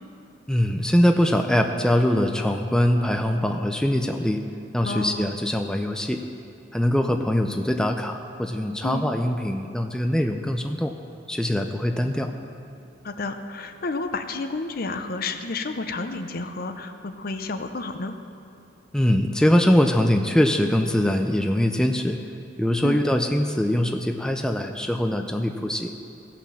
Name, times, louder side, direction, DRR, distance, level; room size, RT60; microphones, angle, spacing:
voice 1, 0.5-4.4 4.7-6.2 6.7-10.9 11.3-12.3 18.9-22.2 22.6-25.9, left 1 dB, 5° left, 5 dB, 0.4 m, -22 dB
voice 2, 4.8-5.3 8.8-9.1 13.0-18.1 22.8-23.0, left 3 dB, 55° left, 8 dB, 0.7 m, -31 dB
15.5 x 5.9 x 7.0 m, 2.6 s
head